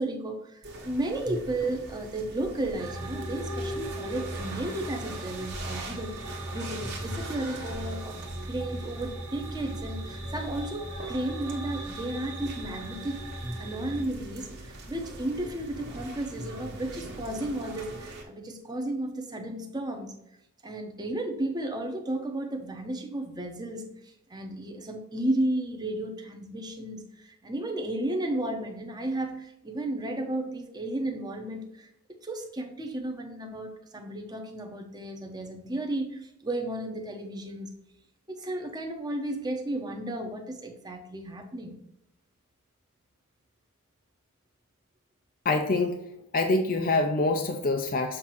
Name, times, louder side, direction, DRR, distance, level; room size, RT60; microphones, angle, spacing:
voice 1, 0.0-8.2 8.5-13.3 13.6-20.2 20.6-31.9 32.2-37.7 38.3-41.7, right 1 dB, 20° right, 3 dB, 0.9 m, -33 dB
sound 1, 0.6-18.2, right 1 dB, 50° right, 1.5 m, -42 dB
sound 2, 2.8-14.0, right 1 dB, 75° right, 1.2 m, -38 dB
voice 2, 45.4-45.9 46.3-48.2, left 3 dB, 40° left, 4 dB, 0.5 m, -25 dB
7.5 x 2.8 x 5.9 m, 0.81 s
head